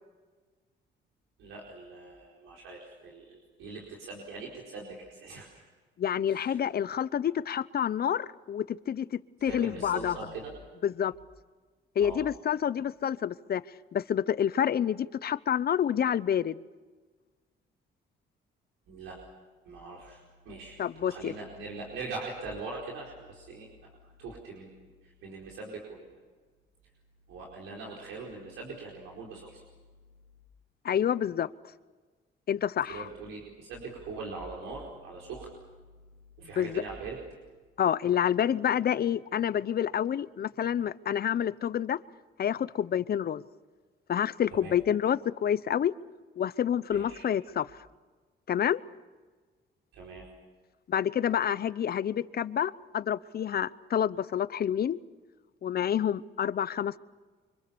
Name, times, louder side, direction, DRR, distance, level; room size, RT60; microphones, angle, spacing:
voice 1, 1.4-5.6 6.3-6.6 9.5-10.5 12.0-12.2 18.9-19.2 19.6-20.8 21.1-26.2 27.3-29.6 32.8-35.5 36.4-37.2 44.6-44.7 46.9-47.3 49.9-50.2, right 3 dB, 90° right, -2 dB, 4.7 m, -42 dB
voice 2, 6.0-10.1 10.8-11.1 12.0-13.6 13.9-16.6 20.8-21.3 30.8-31.5 32.5-33.1 36.6-36.8 37.8-42.0 42.4-43.4 44.1-45.9 46.4-47.7 48.5-48.8 50.9-55.0 55.6-57.0, left 9 dB, 50° left, 17 dB, 0.8 m, -28 dB
26.0 x 25.0 x 7.1 m, 1.4 s
cardioid pair, 90°, 20 cm